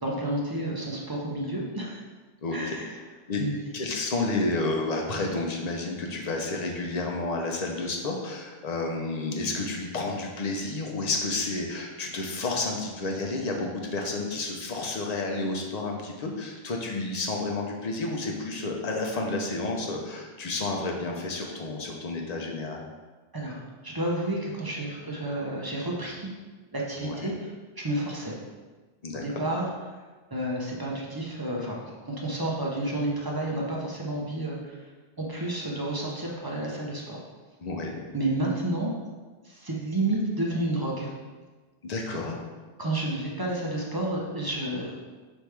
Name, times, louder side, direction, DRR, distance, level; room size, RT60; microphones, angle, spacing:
voice 1, 0.0-2.0 2.5-2.9 3.4-3.5 23.3-26.3 26.7-27.5 27.8-28.4 29.1-29.7 30.3-34.9 35.2-37.2 38.1-38.9 39.4-41.1 42.8-45.0, right 1 dB, 25° right, -3 dB, 0.5 m, -30 dB
voice 2, 2.4-2.8 3.3-3.4 3.7-22.8 27.0-27.3 29.0-29.2 37.6-38.0 41.8-42.4, left 2 dB, 45° left, 0 dB, 0.7 m, -30 dB
4.4 x 3.4 x 3.2 m, 1.3 s
omnidirectional pair, 1.0 m